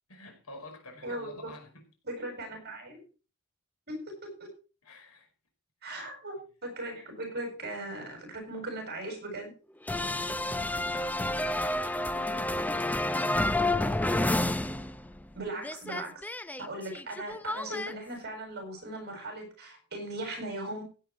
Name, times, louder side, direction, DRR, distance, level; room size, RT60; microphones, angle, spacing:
voice 1, 0.1-1.9 4.8-5.3 10.8-13.1, left 2 dB, 85° left, 5.4 m, -50 dB
voice 2, 1.0-1.5 2.0-3.0 3.9-4.5 5.8-9.5 15.4-16.2 16.6-20.8, right 1 dB, 50° right, 7.5 m, -38 dB
sound 1, 9.9-15.3 15.6-17.9, left 1 dB, 5° left, 0.6 m, -30 dB
16.0 x 9.0 x 4.5 m
head